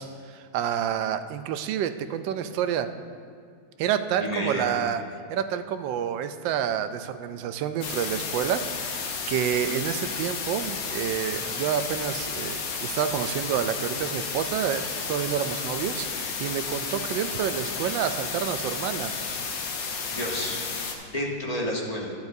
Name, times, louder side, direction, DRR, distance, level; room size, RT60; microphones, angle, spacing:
voice 1, 0.0-2.9 3.8-5.0 5.3-19.1, right 9 dB, 85° right, 10 dB, 1.3 m, -29 dB
voice 2, 4.2-4.7 20.1-20.6 21.0-22.1, left 1 dB, 25° left, -2 dB, 1.2 m, -30 dB
sound 1, 7.8-20.9, left 5 dB, 75° left, 1.6 m, -32 dB
11.5 x 11.0 x 2.7 m, 2.2 s
omnidirectional pair, 2.0 m